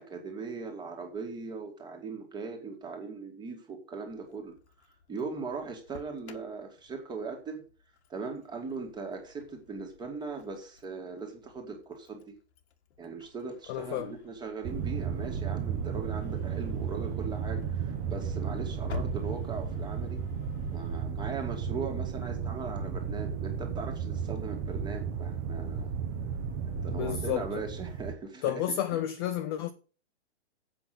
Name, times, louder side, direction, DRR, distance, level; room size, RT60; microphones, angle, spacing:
voice 1, 0.0-4.6 5.1-7.6 8.1-12.4 13.0-20.2 20.7-25.9 26.6-29.0, right 4 dB, 10° right, 2.1 m, -39 dB
Engine starting, 4.1-21.0, left 6 dB, 70° left, 1.8 m, -51 dB
voice 2, 13.7-14.1 26.9-27.5 28.4-29.7, left 11 dB, 20° left, 0.4 m, -31 dB
sound 1, 14.6-28.1, right 7 dB, 30° right, 1.2 m, -34 dB
7.8 x 6.2 x 7.8 m
hypercardioid pair, 150°, 34 cm